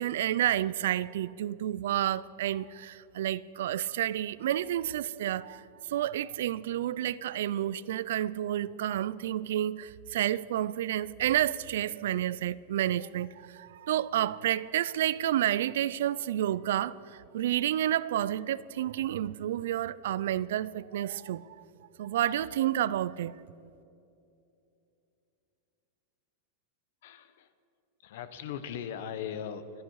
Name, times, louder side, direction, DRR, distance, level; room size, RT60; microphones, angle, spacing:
voice 1, 0.0-21.4 22.0-23.4, right 12 dB, 75° right, 0.4 m, -30 dB
voice 2, 27.0-27.5 28.0-29.8, left 8 dB, 65° left, 1.1 m, -39 dB
26.0 x 10.5 x 4.8 m
supercardioid pair, 160°, 0 cm